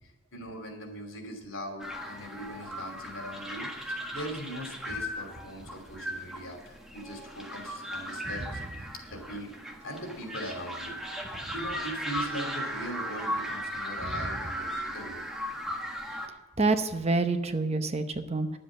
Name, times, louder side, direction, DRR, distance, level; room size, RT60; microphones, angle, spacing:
voice 1, 0.3-8.6 9.0-9.5 9.8-11.0 11.5-15.2, right 1 dB, 75° left, 4 dB, 2.8 m, -40 dB
sound 1, 1.8-16.3, equal, ahead, 1.4 m, -37 dB
voice 2, 16.6-18.6, right 3 dB, 30° right, 8 dB, 0.8 m, -27 dB
11.0 x 7.7 x 7.3 m, 1.2 s
head